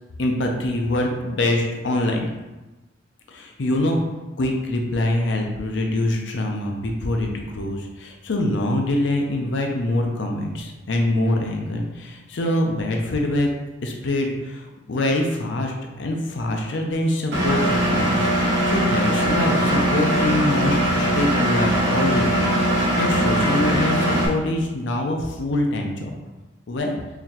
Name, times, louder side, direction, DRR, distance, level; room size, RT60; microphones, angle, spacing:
voice 1, 0.2-2.3 3.3-4.0 4.4-13.5 13.8-22.5 22.9-26.1 26.7-26.9, left 1 dB, 75° left, 2 dB, 0.5 m, -24 dB
Engine, 17.3-24.3, right 1 dB, 65° right, 1.0 m, -20 dB
4.0 x 3.0 x 2.8 m, 1.1 s
head